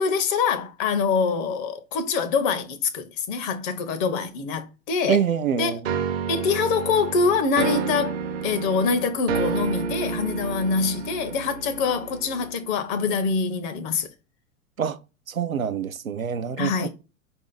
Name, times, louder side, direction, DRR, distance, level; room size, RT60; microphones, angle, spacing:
voice 1, 0.0-5.2 5.6-5.8 6.3-14.1 16.6-16.9, left 5 dB, 25° left, 0.5 m, -25 dB
voice 2, 5.1-5.8 14.8-15.0 15.3-16.7, right 7 dB, 85° right, 0.6 m, -25 dB
sound 1, 5.8-12.7, right 6 dB, 50° right, 0.8 m, -30 dB
5.0 x 2.6 x 3.8 m
figure-of-eight pair, 95°, 40 cm